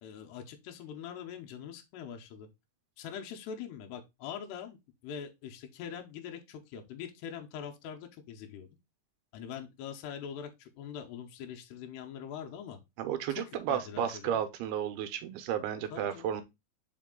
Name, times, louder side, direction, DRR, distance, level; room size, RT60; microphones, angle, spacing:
voice 1, 0.0-2.5 3.0-4.8 5.0-8.7 9.3-12.8 13.3-13.4 13.7-14.4 15.9-16.3, left 8 dB, 90° left, 3.0 m, -43 dB
voice 2, 13.0-16.4, right 9 dB, 80° right, 2.7 m, -33 dB
5.2 x 5.2 x 3.7 m
omnidirectional pair, 4.7 m